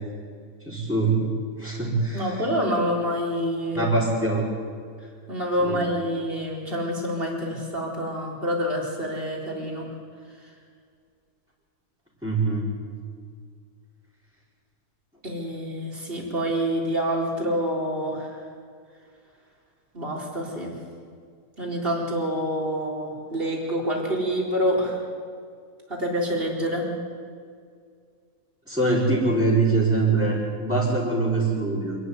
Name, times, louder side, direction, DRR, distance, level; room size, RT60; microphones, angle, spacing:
voice 1, 0.7-1.3 1.6-2.4 3.7-4.5 5.6-5.8 12.2-12.7 28.7-32.0, right 3 dB, ahead, -9 dB, 4.4 m, -23 dB
voice 2, 2.1-3.8 5.3-9.9 15.2-18.3 19.9-20.7 21.6-25.0 25.9-26.9, equal, 35° right, -2 dB, 4.4 m, -27 dB
27.0 x 12.5 x 9.6 m, 2.1 s
omnidirectional pair, 1.7 m